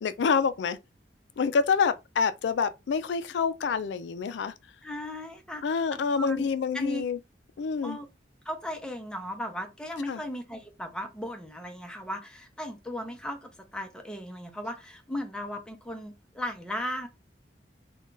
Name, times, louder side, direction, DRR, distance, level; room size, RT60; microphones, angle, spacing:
voice 1, 0.0-0.8 1.4-4.5 5.6-7.2 7.6-8.0 10.1-10.2, left 5 dB, 70° left, 0.3 m, -27 dB
voice 2, 4.8-5.6 6.2-6.5 6.7-7.0 7.8-8.1 8.5-17.1, left 1 dB, 5° left, 0.6 m, -36 dB
2.5 x 2.2 x 3.8 m
head